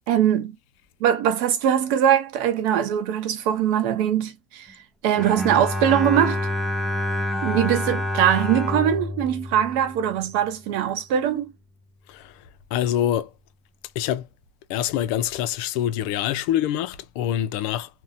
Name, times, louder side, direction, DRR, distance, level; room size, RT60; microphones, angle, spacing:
voice 1, 0.1-0.6 1.0-4.7 5.0-6.4 7.4-11.5, right 10 dB, 70° right, 0.7 m, -21 dB
Bowed string instrument, 5.1-10.5, left 1 dB, ahead, 0.6 m, -28 dB
voice 2, 12.7-13.3 14.0-14.2 14.7-17.9, left 11 dB, 65° left, 0.4 m, -25 dB
2.6 x 2.1 x 2.6 m
supercardioid pair, 135°, 0 cm